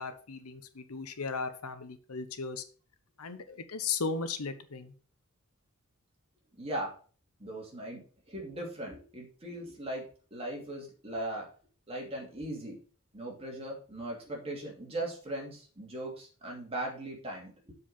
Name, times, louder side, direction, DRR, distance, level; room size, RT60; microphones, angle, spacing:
voice 1, 0.0-2.6 3.2-4.9, left 4 dB, 85° left, 10 dB, 1.0 m, -36 dB
voice 2, 6.6-6.9 7.4-8.0 8.3-10.0 10.3-11.5 11.9-12.8 13.1-17.7, right 1 dB, 25° right, -2 dB, 2.8 m, -38 dB
7.4 x 4.9 x 5.6 m, 0.41 s
head